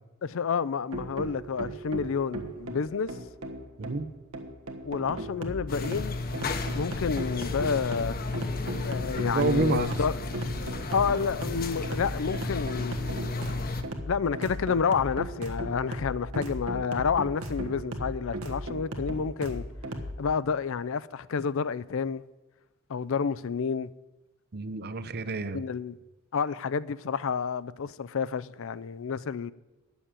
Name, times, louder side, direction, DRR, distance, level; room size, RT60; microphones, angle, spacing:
voice 1, 0.2-3.1 4.8-6.2 6.7-8.2 8.8-10.2 10.9-12.9 14.1-19.7 20.2-22.2 22.9-23.9 25.5-26.0 26.3-29.5, left 6 dB, 65° left, 0.5 m, -29 dB
sound 1, 0.9-20.1, equal, 85° right, 1.5 m, -36 dB
voice 2, 3.8-4.1 9.3-9.9 24.5-25.6, right 3 dB, 50° right, 0.7 m, -28 dB
sound 2, 5.7-13.8, left 3 dB, 45° left, 1.0 m, -34 dB
10.0 x 7.1 x 8.9 m
head